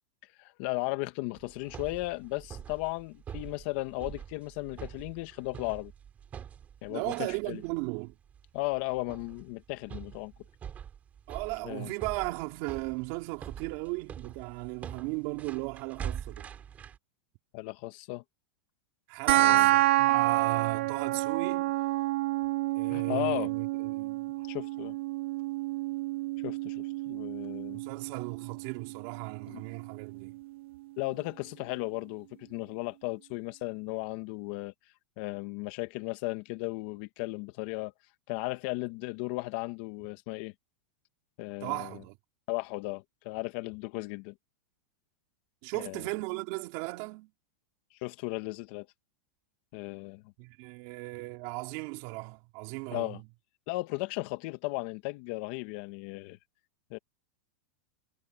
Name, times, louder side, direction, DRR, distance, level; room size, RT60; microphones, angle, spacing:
voice 1, 0.4-5.9 6.8-7.6 8.5-10.3 11.6-11.9 17.5-18.2 19.3-19.7 22.9-23.5 24.5-25.0 26.4-27.8 29.5-29.6 31.0-34.7 35.2-37.9 38.3-40.5 41.4-42.0 42.5-44.3 45.7-46.0 48.0-48.9 49.7-50.2 52.9-53.2 53.7-56.4 56.9-57.0, left 22 dB, 50° left, 1.8 m, -35 dB
sound 1, 1.4-17.0, right 8 dB, 20° right, 7.1 m, -45 dB
voice 2, 6.9-8.1 11.3-16.5 19.1-21.7 22.8-24.3 27.7-30.4 41.6-42.2 45.6-47.3 50.4-53.2, right 25 dB, 50° right, 3.5 m, -36 dB
sound 2, 19.3-30.3, right 17 dB, 65° right, 0.7 m, -29 dB
supercardioid pair, 145°, 7 cm